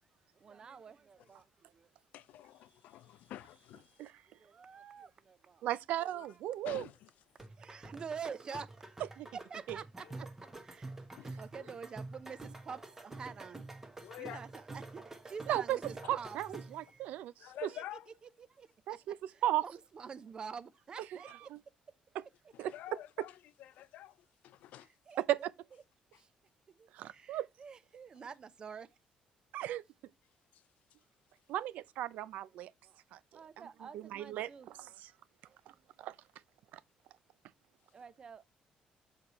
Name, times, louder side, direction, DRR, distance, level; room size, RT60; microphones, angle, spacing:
voice 1, 0.3-1.9 2.7-3.3 3.9-5.7 6.2-6.4 7.6-8.7 9.5-10.3 10.6-13.6 14.2-16.4 16.8-17.1 17.7-17.8 18.4-19.0 19.3-21.5 24.8-25.5 26.1-26.3 26.7-28.9 32.8-33.0 33.3-35.0 35.4-36.1 37.9-38.5, right 6 dB, 35° right, 0.6 m, -48 dB
voice 2, 2.1-4.1 6.0-6.2 6.6-7.1 8.5-8.6 10.0-10.1 11.2-11.7 14.0-14.4 16.0-16.1 17.4-18.1 22.5-24.9 26.1-26.2 30.5-30.6, left 13 dB, 75° left, 0.4 m, -49 dB
voice 3, 5.6-6.9 9.2-9.3 15.5-15.8 16.1-17.7 18.9-19.2 19.4-19.6 21.5-21.6 22.1-22.2 22.6-22.7 25.2-25.4 26.9-27.5 29.5-29.8 31.5-32.7 33.1-33.2 33.9-35.1 35.7-36.2 36.7-36.8, right 13 dB, 80° right, 0.5 m, -36 dB
sound 1, 7.4-16.9, right 2 dB, 15° right, 1.0 m, -48 dB
6.7 x 4.1 x 4.1 m
cardioid pair, 150°, 3 cm